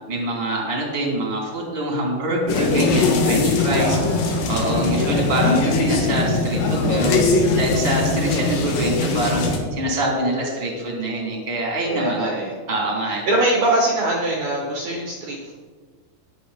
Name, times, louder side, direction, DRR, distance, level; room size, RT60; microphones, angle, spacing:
voice 1, 0.1-4.0 4.5-7.2 7.5-9.4 9.7-12.2 12.7-13.2, right 1 dB, 20° right, -1 dB, 1.8 m, -24 dB
sound 1, 2.5-9.6, left 3 dB, 85° left, 4.2 m, -21 dB
voice 2, 3.6-4.7 11.9-12.5 13.2-15.5, right 1 dB, 80° right, -2 dB, 1.7 m, -23 dB
19.5 x 6.9 x 4.2 m, 1.5 s
omnidirectional pair, 5.8 m